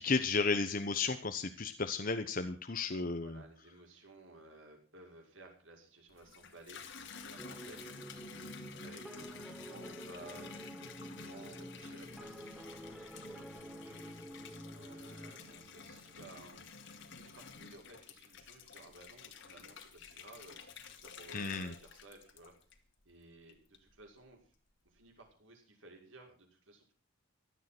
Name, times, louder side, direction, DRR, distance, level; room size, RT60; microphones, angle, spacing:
voice 1, 0.0-3.4 21.3-21.7, left 4 dB, 45° left, 7 dB, 1.0 m, -33 dB
voice 2, 3.2-7.9 8.8-10.6 11.2-14.1 14.7-16.7 17.1-20.6 20.9-22.5 23.0-24.5 24.8-26.9, right 2 dB, 70° right, 2 dB, 6.0 m, -56 dB
Water tap faucet / Bathtub (filling or washing), 6.1-23.0 23.5-24.1, left 4 dB, 60° left, 2.3 m, -51 dB
sound 1, 7.4-16.6, equal, ahead, 0.8 m, -50 dB
16.5 x 12.5 x 6.1 m, 0.41 s
head